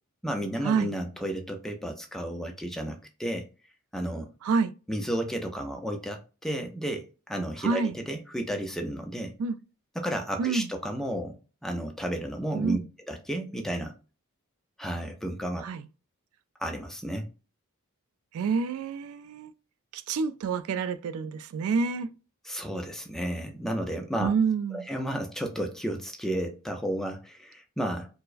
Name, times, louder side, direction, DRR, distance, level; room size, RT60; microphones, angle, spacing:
voice 1, 0.2-3.5 3.9-4.3 4.9-9.3 10.0-11.4 11.6-12.8 13.1-13.9 14.8-15.6 16.6-17.3 22.4-24.3 24.7-28.1, right 1 dB, ahead, 0.4 m, -32 dB
voice 2, 4.4-4.7 7.6-7.9 9.4-9.6 10.4-10.7 12.5-12.8 15.6-15.9 18.3-19.5 19.9-22.1 24.2-24.9, right 5 dB, 75° right, 0.3 m, -28 dB
4.4 x 2.1 x 2.4 m
head